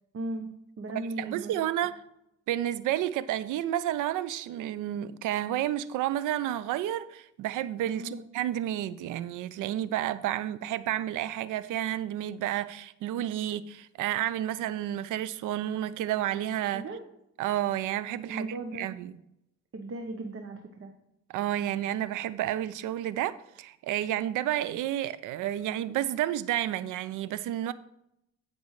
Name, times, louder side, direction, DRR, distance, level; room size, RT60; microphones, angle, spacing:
voice 1, 0.1-1.9 7.9-8.2 16.7-17.0 18.3-18.9 19.7-20.9, right 2 dB, 50° right, 1.0 m, -37 dB
voice 2, 1.0-2.0 2.5-16.8 17.4-19.2 21.3-27.7, right 12 dB, 85° right, 0.5 m, -31 dB
14.5 x 5.3 x 3.1 m
cardioid pair, 90°, 30 cm